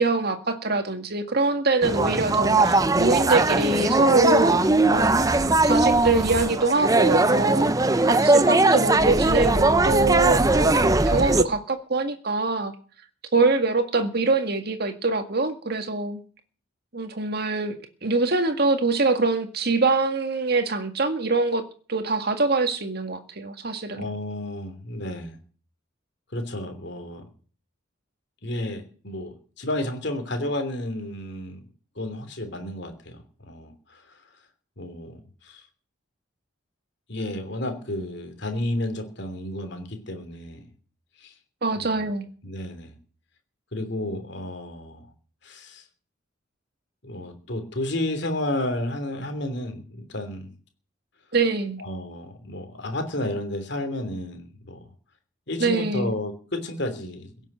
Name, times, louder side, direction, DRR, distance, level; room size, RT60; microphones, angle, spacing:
voice 1, 0.0-7.7 8.0-12.7 13.3-16.2 16.9-24.0 41.6-42.3 51.3-51.8 55.6-56.1, right 3 dB, 50° right, 8 dB, 1.9 m, -24 dB
sound 1, 1.8-11.4, right 2 dB, 15° right, 0.7 m, -20 dB
voice 2, 24.0-25.4 26.3-27.2 28.4-31.6 31.9-34.2 34.8-35.6 37.1-40.7 41.2-41.3 41.8-42.1 42.4-42.9 43.7-45.1 45.4-45.8 47.0-50.5 51.8-54.9 55.5-57.3, left 1 dB, 60° left, 7 dB, 3.1 m, -32 dB
16.5 x 7.4 x 8.9 m, 0.42 s
head